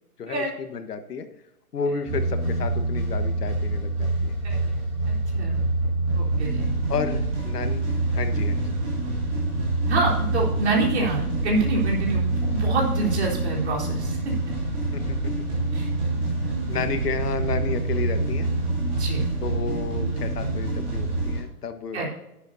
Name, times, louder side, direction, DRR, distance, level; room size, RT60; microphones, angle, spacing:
voice 1, 0.2-1.3 1.7-4.3 6.9-8.6 14.9-15.3 16.7-18.5 19.4-22.0, left 5 dB, 85° left, 9 dB, 1.5 m, -32 dB
sound 1, 2.1-21.4, right 2 dB, 15° right, 3.0 m, -26 dB
voice 2, 5.1-5.6 6.1-6.7 9.9-14.4 15.7-15.9 19.0-19.3 21.9-22.1, right 3 dB, 45° right, -3 dB, 4.1 m, -27 dB
11.5 x 10.0 x 2.7 m, 0.88 s
hypercardioid pair, 175°, 46 cm